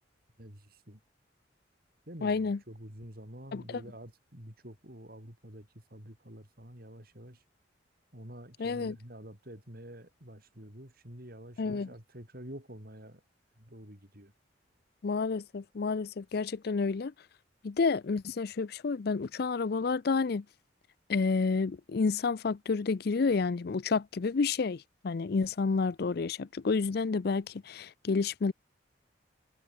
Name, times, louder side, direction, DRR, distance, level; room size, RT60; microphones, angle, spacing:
voice 1, 0.4-1.0 2.1-7.4 8.1-13.2 13.6-14.3, equal, 50° right, 7.6 m, -48 dB
voice 2, 2.2-2.6 3.5-3.8 8.6-9.0 11.6-11.9 15.0-17.1 17.6-20.4 21.1-28.5, left 4 dB, 55° left, 0.5 m, -30 dB
head